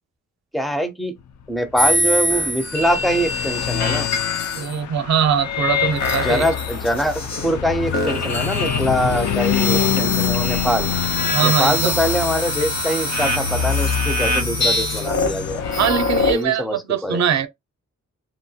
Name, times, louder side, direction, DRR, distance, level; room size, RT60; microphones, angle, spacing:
voice 1, 0.5-1.1 1.5-4.1 6.2-10.9 11.4-15.6 16.2-17.2, equal, ahead, 0.4 m, -23 dB
sound 1, 1.8-4.7 5.4-7.6 7.9-16.4, left 2 dB, 65° left, 0.9 m, -24 dB
Car passing by / Truck, 1.9-16.3, left 9 dB, 85° left, 0.5 m, -26 dB
voice 2, 4.5-6.5 11.3-12.0 15.8-17.5, right 8 dB, 70° right, 0.5 m, -21 dB
2.8 x 2.1 x 2.7 m
wide cardioid pair, 180°, 29 cm